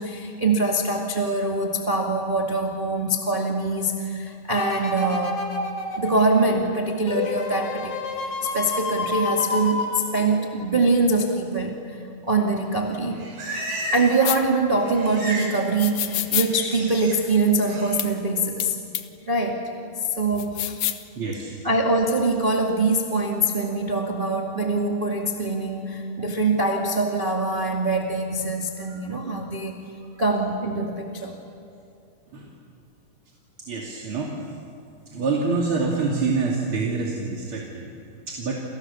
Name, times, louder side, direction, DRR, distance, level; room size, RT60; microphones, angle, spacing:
voice 1, 0.0-5.4 6.0-7.9 8.2-11.8 12.3-13.2 13.9-18.7 19.2-19.6 20.2-20.8 21.6-29.7 30.2-31.4, right 2 dB, 20° right, 0 dB, 1.5 m, -23 dB
sound 1, 4.6-10.8 11.3-11.4, left 2 dB, 50° left, 4.2 m, -30 dB
Livestock farm animals working animals, 12.8-14.3 14.5-15.6 15.9-17.2 17.6-18.0, right 1 dB, 75° right, 7.4 m, -34 dB
sound 2, 14.2-14.4 15.8-16.5 18.0-18.1 18.6-18.7 18.9-19.0 20.4-21.0, left 12 dB, 70° left, 2.6 m, -26 dB
voice 2, 21.2-21.5 28.9-29.0 32.3-32.5 33.7-34.3 35.1-38.6, right 4 dB, 35° right, -2 dB, 3.0 m, -26 dB
29.0 x 28.5 x 7.1 m, 2.5 s
omnidirectional pair, 4.4 m